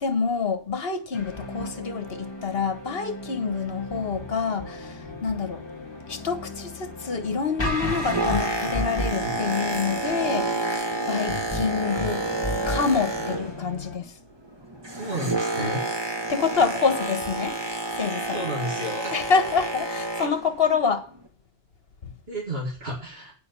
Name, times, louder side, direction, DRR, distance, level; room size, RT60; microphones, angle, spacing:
voice 1, 0.0-5.6 6.1-12.2 12.7-14.1 16.3-17.5 17.9-18.5 19.1-21.1 22.0-22.1, left 5 dB, 55° left, 1.5 m, -27 dB
sound 1, 1.1-14.0, left 1 dB, 20° left, 1.9 m, -35 dB
Boat Water vehicle, 7.7-13.8 14.1-20.5 21.1-21.3, right 2 dB, 20° right, 1.5 m, -29 dB
voice 2, 15.0-15.8 18.3-19.1 22.3-23.3, equal, 55° right, 2.6 m, -32 dB
9.7 x 7.0 x 6.7 m
omnidirectional pair, 1.2 m